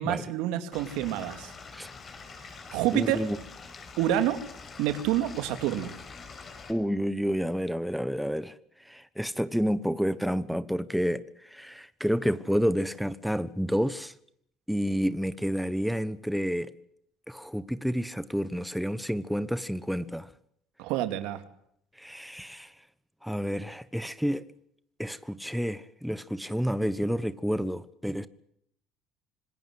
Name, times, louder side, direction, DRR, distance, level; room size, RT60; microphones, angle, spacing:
voice 1, 0.0-1.5 2.7-3.2 4.0-4.4 4.8-5.9 20.8-21.4, right 12 dB, 80° right, 2.6 m, -28 dB
Stream / Liquid, 0.7-6.7, left 4 dB, 40° left, 6.1 m, -45 dB
voice 2, 2.9-3.4 6.7-8.6 8.8-14.1 14.7-16.7 17.3-20.3 22.0-22.7 23.2-24.4 25.0-28.3, equal, ahead, 1.3 m, -29 dB
26.5 x 20.0 x 7.9 m
supercardioid pair, 85°, 0 cm